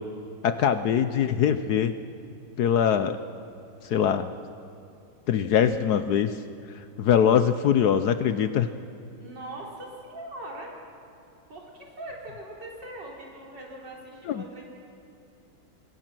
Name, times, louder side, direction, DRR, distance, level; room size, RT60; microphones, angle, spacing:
voice 1, 0.4-1.9 2.6-3.2 3.8-4.3 5.3-6.4 7.0-8.7 14.3-14.6, left 8 dB, 65° left, 11 dB, 1.1 m, -22 dB
voice 2, 9.2-10.8 11.5-14.6, right 1 dB, 65° right, -2 dB, 4.3 m, -41 dB
26.0 x 21.0 x 6.1 m, 2.6 s
omnidirectional pair, 2.1 m